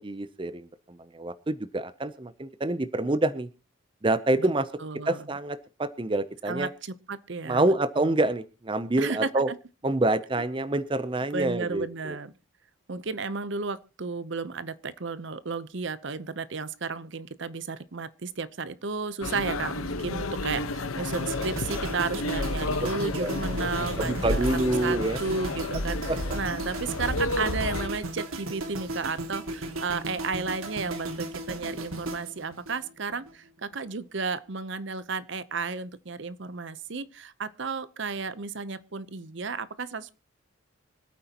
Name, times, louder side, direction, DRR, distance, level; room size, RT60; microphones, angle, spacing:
voice 1, 0.0-3.5 4.0-4.7 5.1-6.7 7.5-9.5 9.8-12.2 23.2-23.4 24.0-25.2 26.1-26.3, right 2 dB, 25° right, 13 dB, 0.5 m, -27 dB
voice 2, 4.8-5.3 6.5-7.6 8.0-8.1 9.0-9.6 11.3-12.3 12.9-24.4 24.8-40.2, right 4 dB, 60° right, 15 dB, 0.8 m, -33 dB
sound 1, 19.2-27.9, left 2 dB, 85° left, 1.1 m, -31 dB
sound 2, 21.1-33.3 33.6-33.9, right 2 dB, 90° right, 2.1 m, -36 dB
25.5 x 9.1 x 2.9 m, 0.31 s
head